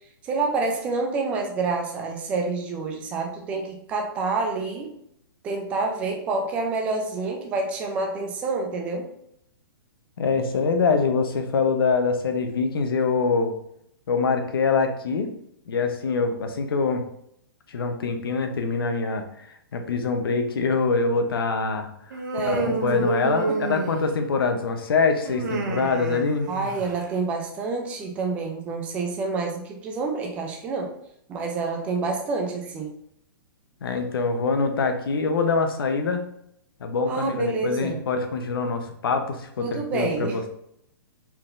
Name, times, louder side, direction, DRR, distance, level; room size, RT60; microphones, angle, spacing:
voice 1, 0.2-5.0 5.4-9.1 22.3-23.1 23.5-23.6 26.5-30.9 31.3-33.0 37.1-38.0 39.6-40.4, right 3 dB, 10° right, 1 dB, 0.4 m, -28 dB
voice 2, 10.2-13.5 14.1-15.3 15.7-17.0 17.7-22.2 22.6-26.5 33.8-36.2 36.8-40.5, left 4 dB, 75° left, 6 dB, 0.8 m, -24 dB
Human voice, 22.1-24.4 25.3-27.1, right 3 dB, 50° right, 0.7 m, -29 dB
4.5 x 3.7 x 2.5 m, 0.73 s
hypercardioid pair, 170°, 12 cm